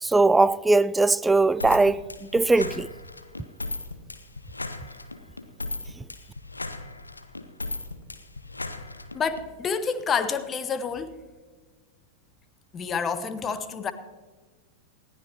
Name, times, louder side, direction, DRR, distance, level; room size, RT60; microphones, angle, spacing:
voice 1, 0.0-2.9, right 3 dB, 10° right, 0.3 m, -20 dB
sound 1, 1.6-9.4, left 2 dB, 80° left, 0.8 m, -36 dB
voice 2, 9.1-11.2 12.7-13.9, left 6 dB, 25° left, 0.9 m, -28 dB
19.5 x 15.0 x 2.9 m
figure-of-eight pair, 90°, 0 cm